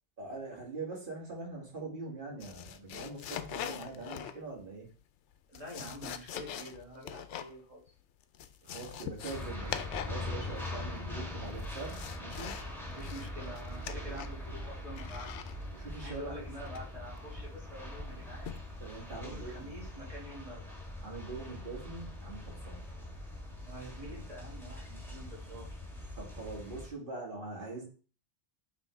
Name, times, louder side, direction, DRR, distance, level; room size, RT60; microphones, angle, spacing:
voice 1, 0.2-4.9 8.6-12.5 13.9-14.1 15.7-16.3 18.8-19.7 21.0-22.8 26.2-27.8, right 3 dB, 50° right, -3 dB, 2.3 m, -43 dB
sound 1, 2.4-4.6 5.3-7.6 7.9-8.0 8.2-10.2 10.5-11.0 11.4-12.7 13.0-14.5 15.0-15.5 16.7-17.1 18.4-18.8 19.3-19.5, left 9 dB, 90° left, 0.9 m, -42 dB
voice 2, 5.5-7.8 12.8-15.3 16.0-18.6 19.1-20.8 23.6-25.8, equal, 30° right, -5 dB, 2.7 m, -47 dB
sound 2, 9.3-26.9, left 1 dB, ahead, 1.6 m, -42 dB
5.7 x 3.6 x 5.1 m, 0.38 s
omnidirectional pair, 1.2 m